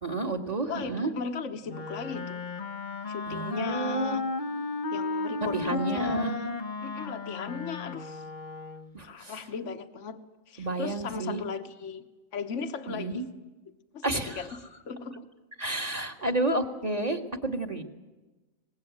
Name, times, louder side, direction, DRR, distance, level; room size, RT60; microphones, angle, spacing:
voice 1, 0.0-1.1 3.3-4.2 5.5-6.3 8.9-9.4 10.6-11.4 12.9-13.3 14.0-14.4 15.6-17.8, right 2 dB, 30° right, 4 dB, 2.0 m, -31 dB
voice 2, 0.7-2.4 3.1-4.2 4.9-6.5 6.8-8.2 9.0-10.2 10.5-12.0 12.3-13.3 13.9-14.5 14.9-15.3, left 5 dB, 60° left, 8 dB, 1.6 m, -36 dB
Wind instrument woodwind instrument, 1.7-9.0, left 3 dB, 40° left, 1.1 m, -35 dB
23.5 x 20.0 x 9.3 m, 1.1 s
omnidirectional pair, 1.4 m